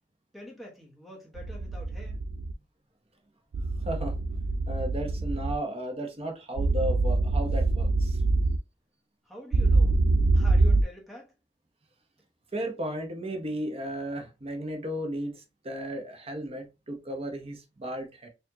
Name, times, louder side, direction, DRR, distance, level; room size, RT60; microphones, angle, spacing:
voice 1, 0.3-2.2 9.2-10.0 10.3-11.3, left 1 dB, ahead, 1.2 m, -46 dB
sound 1, 1.4-2.5 3.5-5.6 6.6-8.6 9.5-10.8, right 2 dB, 70° right, 0.3 m, -24 dB
voice 2, 3.8-4.2 4.7-8.2 12.5-18.3, right 1 dB, 35° right, 0.9 m, -34 dB
4.4 x 2.6 x 2.7 m
head